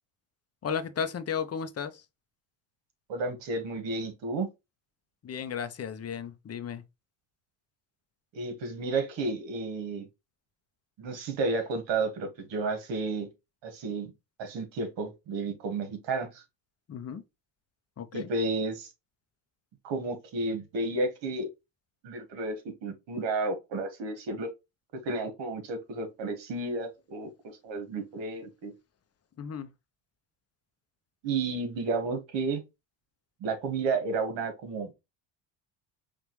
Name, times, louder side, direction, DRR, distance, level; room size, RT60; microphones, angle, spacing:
voice 1, 0.6-2.0 5.2-6.8 16.9-17.2 18.0-18.3 29.4-29.7, left 7 dB, 35° left, 0.7 m, -34 dB
voice 2, 3.1-4.5 8.3-10.1 11.0-13.3 13.6-14.1 14.4-16.4 18.1-18.9 19.8-21.5 22.0-22.6 22.8-24.5 25.0-28.7 31.2-32.6 33.4-34.9, right 3 dB, 70° right, 1.6 m, -32 dB
5.1 x 2.5 x 3.1 m
supercardioid pair, 85°, 46 cm